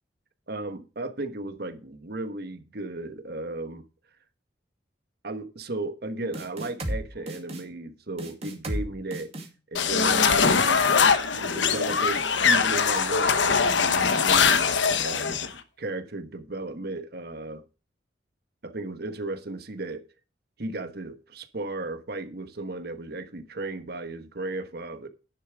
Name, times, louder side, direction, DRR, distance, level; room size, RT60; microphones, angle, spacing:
voice 1, 0.5-3.8 5.2-9.3 9.7-10.8 11.3-14.7 15.0-17.6 18.6-20.0 20.6-25.1, right 2 dB, 60° right, 1.3 m, -35 dB
Snare Beat, 6.3-7.0 7.3-7.6 8.2-8.8 9.1-9.5, right 1 dB, 35° right, 2.4 m, -32 dB
sound 1, 9.7-15.5, left 5 dB, 85° left, 1.0 m, -22 dB
10.5 x 7.0 x 4.7 m
head